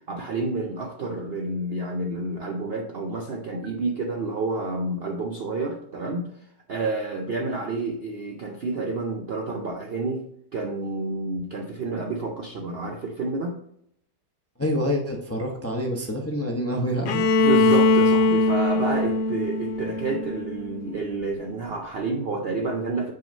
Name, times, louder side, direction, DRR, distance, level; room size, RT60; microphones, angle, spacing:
voice 1, 0.1-10.3 10.5-13.6 17.4-23.1, right 3 dB, 90° right, 2 dB, 0.5 m, -29 dB
voice 2, 14.6-17.2, equal, 20° left, 1 dB, 0.4 m, -27 dB
Bowed string instrument, 17.1-20.9, left 3 dB, 80° left, 1.3 m, -21 dB
6.0 x 4.8 x 5.3 m, 0.74 s
omnidirectional pair, 1.9 m